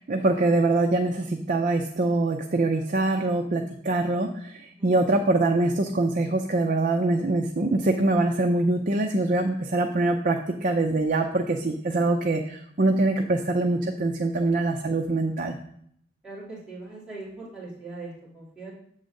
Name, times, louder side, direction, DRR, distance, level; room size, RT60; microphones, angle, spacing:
voice 1, 0.0-15.6, right 2 dB, 45° right, 4 dB, 0.5 m, -24 dB
voice 2, 16.2-18.7, right 2 dB, 5° right, -8 dB, 2.4 m, -40 dB
7.9 x 3.9 x 6.4 m, 0.68 s
head